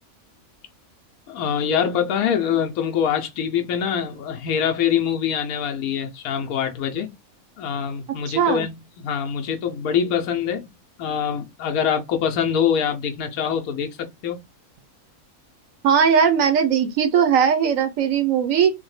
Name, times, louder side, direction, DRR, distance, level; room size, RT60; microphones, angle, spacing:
voice 1, 1.3-7.1 7.6-10.7 11.0-14.4, left 8 dB, 90° left, 1.1 m, -24 dB
voice 2, 8.3-8.6 15.8-18.7, right 7 dB, 75° right, 1.0 m, -19 dB
3.4 x 2.1 x 3.1 m
omnidirectional pair, 1.5 m